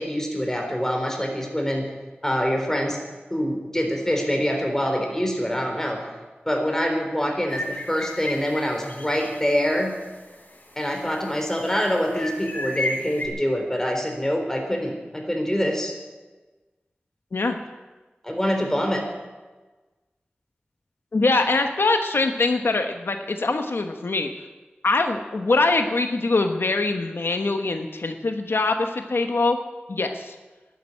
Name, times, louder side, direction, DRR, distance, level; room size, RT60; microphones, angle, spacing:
voice 1, 0.0-1.9 2.2-3.0 3.3-6.1 6.5-9.9 10.8-15.9 18.2-19.1, equal, 10° left, 2 dB, 3.8 m, -25 dB
sound 1, 7.5-9.4 9.7-9.8 10.3-11.2 11.8-13.3, left 1 dB, 50° left, 3.3 m, -33 dB
voice 2, 21.1-24.3 24.8-29.6 29.9-30.3, left 3 dB, 85° left, 6 dB, 1.0 m, -23 dB
11.5 x 10.0 x 9.8 m, 1.2 s
wide cardioid pair, 55°, 4 cm